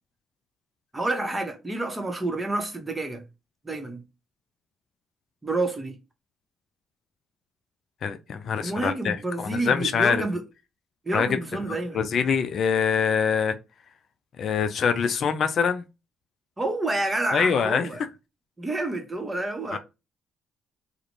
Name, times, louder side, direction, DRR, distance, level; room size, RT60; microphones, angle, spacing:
voice 1, 0.9-3.2 3.6-4.0 5.4-6.0 8.6-10.4 11.0-12.0 16.6-18.0 18.6-19.8, right 2 dB, 20° right, 0.8 m, -29 dB
voice 2, 8.0-10.2 11.1-11.3 11.9-13.6 14.4-15.8 17.3-17.9 19.7-19.8, left 6 dB, 60° left, 0.3 m, -24 dB
2.4 x 2.1 x 3.0 m
hypercardioid pair, 50°, 0 cm